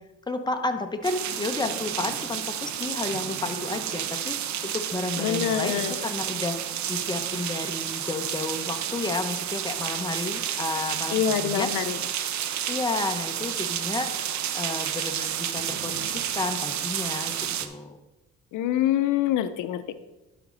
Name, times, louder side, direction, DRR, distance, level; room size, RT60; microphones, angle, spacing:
voice 1, 0.3-4.4 4.6-6.6 6.9-11.7 12.7-14.1 14.5-17.3 17.6-18.0, left 3 dB, 15° left, 6 dB, 0.9 m, -31 dB
sound 1, 1.0-17.7, right 10 dB, 65° right, 0.7 m, -31 dB
voice 2, 5.2-6.0 11.1-12.0 18.5-19.9, left 10 dB, 85° left, 12 dB, 0.6 m, -25 dB
11.5 x 5.1 x 4.0 m, 1.0 s
cardioid pair, 90°, 30 cm